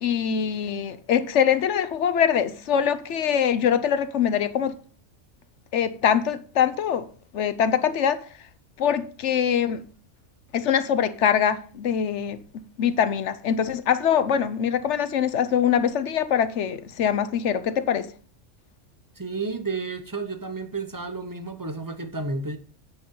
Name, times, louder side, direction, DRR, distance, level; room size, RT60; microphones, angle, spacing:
voice 1, 0.0-4.7 5.7-7.1 7.3-8.2 8.8-9.8 10.5-12.4 12.8-18.1, left 8 dB, 65° left, 1.1 m, -23 dB
voice 2, 19.2-22.6, right 3 dB, 15° right, 0.9 m, -31 dB
10.5 x 8.1 x 3.8 m
omnidirectional pair, 1.3 m